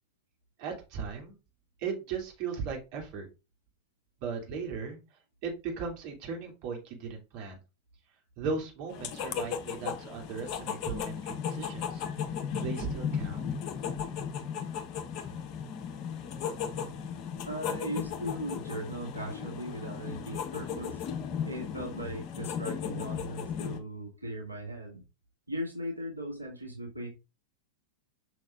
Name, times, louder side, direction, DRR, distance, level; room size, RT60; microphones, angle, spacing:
voice 1, 0.6-1.4 1.8-3.3 4.2-5.0 5.4-7.6 8.4-12.0 12.5-13.4, right 5 dB, 45° right, 1 dB, 2.6 m, -37 dB
sound 1, 8.9-23.8, left 7 dB, 40° left, 1.0 m, -36 dB
voice 2, 17.4-21.0 21.4-25.0 25.5-27.1, right 1 dB, 85° right, 0 dB, 2.0 m, -38 dB
6.3 x 6.2 x 2.4 m, 0.27 s
figure-of-eight pair, 90°, 0 cm